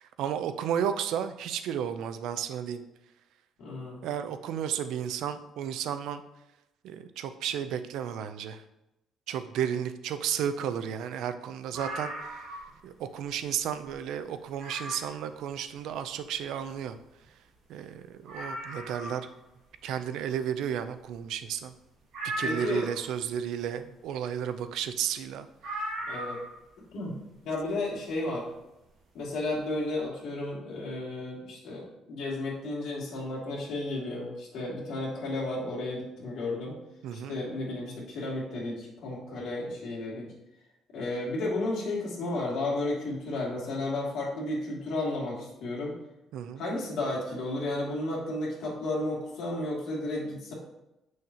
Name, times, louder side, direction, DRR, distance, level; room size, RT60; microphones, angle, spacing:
voice 1, 0.0-2.8 4.0-6.2 6.8-8.6 9.3-12.4 12.8-17.0 17.7-19.2 19.8-21.7 22.4-25.5 37.0-37.4 46.3-46.6, right 9 dB, 75° right, 10 dB, 0.5 m, -33 dB
voice 2, 3.6-4.0 22.4-22.9 26.1-26.4 26.9-27.2 27.4-28.5 29.1-36.8 37.1-40.3 40.9-46.0 46.6-50.5, left 2 dB, 60° left, -5 dB, 2.6 m, -33 dB
sound 1, 11.7-12.8 13.2-13.3 13.8-13.9 14.6-15.2 17.0-17.1 17.2-17.3 17.8-17.9 18.3-19.3 22.1-23.1 25.6-26.6 27.9-28.0, right 1 dB, 55° right, 2.1 m, -37 dB
7.2 x 6.3 x 2.9 m, 0.92 s
cardioid pair, 165°, 0 cm